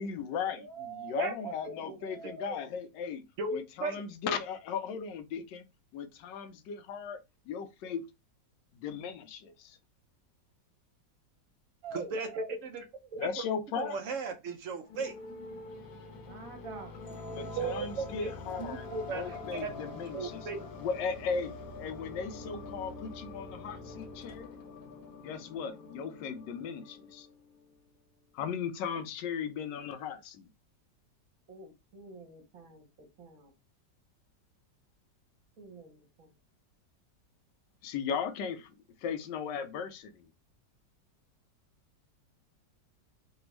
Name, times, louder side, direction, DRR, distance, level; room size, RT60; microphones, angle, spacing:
voice 1, 0.0-3.3 3.5-5.6 5.9-7.2 7.5-8.1 8.7-9.8 13.2-14.0 17.3-20.4 20.8-24.6 25.2-27.3 28.3-30.5 37.8-38.7 39.0-40.3, left 6 dB, 80° left, 1.2 m, -37 dB
voice 2, 0.6-1.1 1.4-2.7 11.8-12.1 16.1-17.0 31.5-32.8 33.2-33.5 35.6-36.3, right 5 dB, 55° right, 1.3 m, -46 dB
voice 3, 3.4-4.0 11.9-12.8 13.1-15.1 17.6-18.3 18.6-19.7 20.1-20.6, right 4 dB, 70° right, 0.7 m, -36 dB
sound 1, 14.9-27.8, left 3 dB, 60° left, 1.0 m, -45 dB
3.4 x 2.3 x 3.0 m
omnidirectional pair, 1.9 m